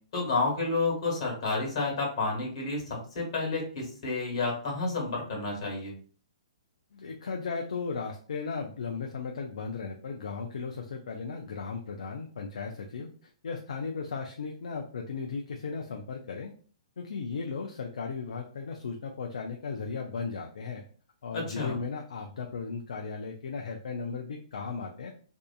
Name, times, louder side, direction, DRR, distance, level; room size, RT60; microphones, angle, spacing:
voice 1, 0.1-5.9 21.3-21.8, left 3 dB, 55° left, 0 dB, 1.3 m, -30 dB
voice 2, 6.9-16.5 17.0-20.8 21.2-25.1, left 5 dB, 70° left, 2 dB, 0.4 m, -36 dB
2.6 x 2.4 x 2.3 m, 0.43 s
hypercardioid pair, 130°, 4 cm